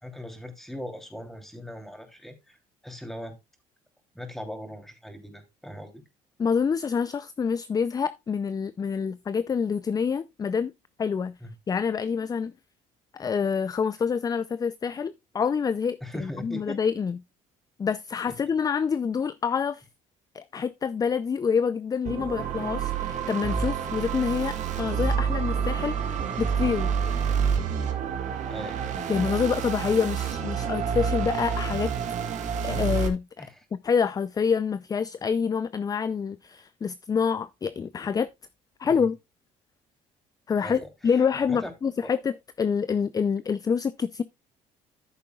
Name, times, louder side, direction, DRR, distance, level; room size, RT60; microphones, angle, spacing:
voice 1, 0.0-2.6 2.8-3.3 4.1-6.0 11.4-11.5 16.0-16.8 18.3-18.4 28.5-28.8 33.4-33.6 38.9-39.1 40.6-41.2 41.5-41.7 42.0-42.1, equal, ahead, 3.1 m, -39 dB
voice 2, 6.4-10.7 11.0-11.3 11.7-12.5 13.1-17.2 17.8-19.8 20.3-25.9 26.4-26.9 29.1-31.9 32.6-33.4 33.7-38.3 38.8-39.2 40.5-44.2, left 6 dB, 25° left, 0.4 m, -27 dB
sound 1, 22.0-33.1, right 6 dB, 55° right, 1.8 m, -28 dB
14.0 x 6.8 x 2.3 m
supercardioid pair, 90°, 14 cm